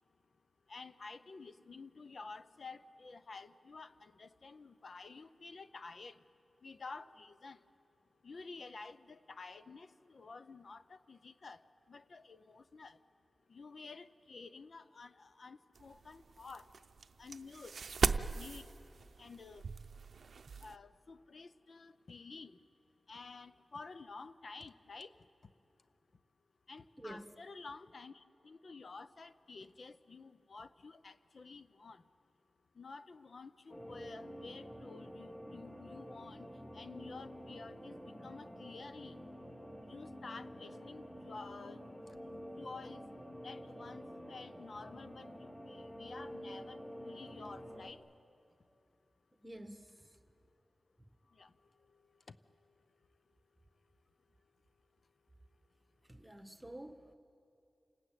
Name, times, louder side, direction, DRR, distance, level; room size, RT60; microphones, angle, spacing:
voice 1, 0.7-6.2 6.6-7.6 8.2-11.6 11.9-13.0 13.5-16.7 17.2-17.7 18.3-18.6 19.2-19.6 20.6-22.6 23.1-25.1 26.7-32.0 32.8-36.5 36.7-39.2 39.9-41.8 42.2-43.0 43.4-48.0 51.4-51.5 52.3-52.4, left 4 dB, 60° left, 12 dB, 0.6 m, -51 dB
sound 1, 15.8-20.8, right 5 dB, 80° right, 0.6 m, -38 dB
voice 2, 27.0-27.3 49.4-50.2 56.0-57.1, right 1 dB, 10° right, 8 dB, 1.3 m, -50 dB
sound 2, 33.7-47.9, equal, 10° left, 2.7 m, -49 dB
28.5 x 19.0 x 9.1 m, 2.7 s
wide cardioid pair, 105°, 0 cm